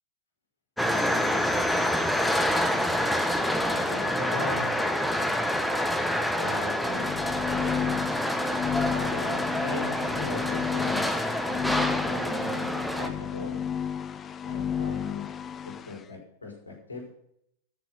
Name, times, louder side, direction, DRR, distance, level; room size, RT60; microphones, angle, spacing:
sound 1, 0.8-13.1, equal, 5° left, 1.1 m, -27 dB
voice 1, 3.7-4.8 6.3-7.1 7.4-8.0 8.9-11.1 12.0-12.7 13.0-13.6 14.4-15.3 15.9-17.1, left 3 dB, 75° left, -1 dB, 4.8 m, -38 dB
sound 2, 6.9-16.0, left 8 dB, 25° left, 0.6 m, -32 dB
14.0 x 6.5 x 7.9 m, 0.73 s
figure-of-eight pair, 90°, 0 cm